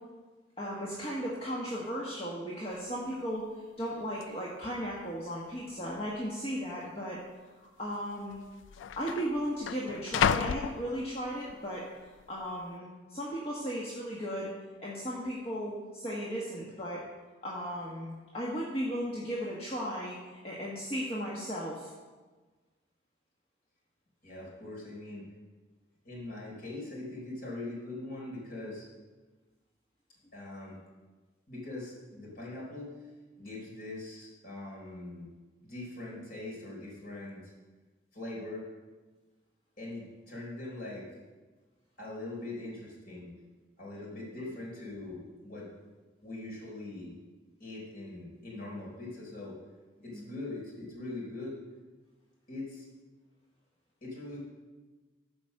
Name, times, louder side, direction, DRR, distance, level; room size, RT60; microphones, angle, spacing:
voice 1, 0.6-3.5 3.8-7.2 7.8-8.4 9.0-11.8 12.3-14.5 14.8-17.0 17.4-20.1 20.4-21.9 44.2-44.4 50.1-50.2, equal, 30° left, -5 dB, 1.4 m, -36 dB
sound 1, 2.7-2.8 3.1-3.5 4.2-4.3 5.1-5.6 5.8-6.0 6.8-7.0 8.0-8.1 8.3-11.5 12.0-12.4, left 7 dB, 85° left, 0.3 m, -34 dB
voice 2, 24.2-25.3 26.0-28.9 30.3-30.8 31.5-33.0 33.4-35.3 35.6-37.5 38.1-38.6 39.8-41.1 42.0-43.3 43.8-45.7 46.2-47.1 47.6-49.6 50.0-51.6 52.5-52.9 54.0-54.4, left 2 dB, 50° left, -4 dB, 3.8 m, -42 dB
13.0 x 5.2 x 6.5 m, 1.3 s
head